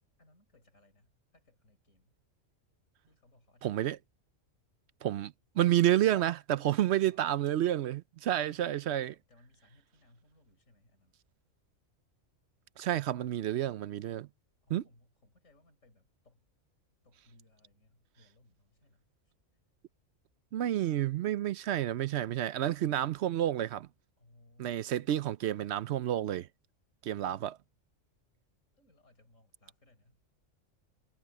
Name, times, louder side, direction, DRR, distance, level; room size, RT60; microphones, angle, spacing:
voice 1, 0.2-2.1 3.0-4.0 7.0-7.3 8.3-8.6 9.0-11.2 12.9-13.3 14.6-16.5 17.0-19.1 20.6-21.1 24.2-25.3 28.8-30.3, left 2 dB, 70° left, 5.4 m, -65 dB
voice 2, 3.6-4.0 5.0-9.1 12.8-14.3 14.7-14.8 20.5-23.9 24.6-26.5 27.0-27.6, right 12 dB, 65° right, 0.8 m, -30 dB
omnidirectional pair, 1.4 m